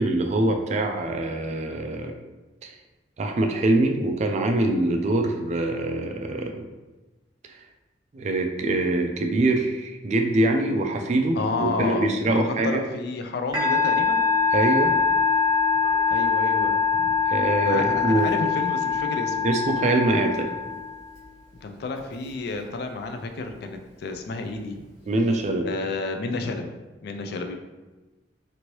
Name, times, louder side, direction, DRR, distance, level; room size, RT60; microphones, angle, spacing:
voice 1, 0.0-2.1 2.6-2.7 3.2-6.6 8.1-12.8 14.5-14.9 17.3-18.3 19.4-20.5 25.1-25.7, right 2 dB, 40° right, 4 dB, 0.3 m, -24 dB
voice 2, 11.3-14.3 16.1-17.1 17.6-19.5 21.6-24.8 25.6-26.7 27.0-27.6, left 3 dB, 60° left, 6 dB, 0.3 m, -31 dB
Musical instrument, 13.5-21.2, left 5 dB, 25° right, 1.1 m, -23 dB
3.0 x 2.6 x 3.0 m, 1.2 s
head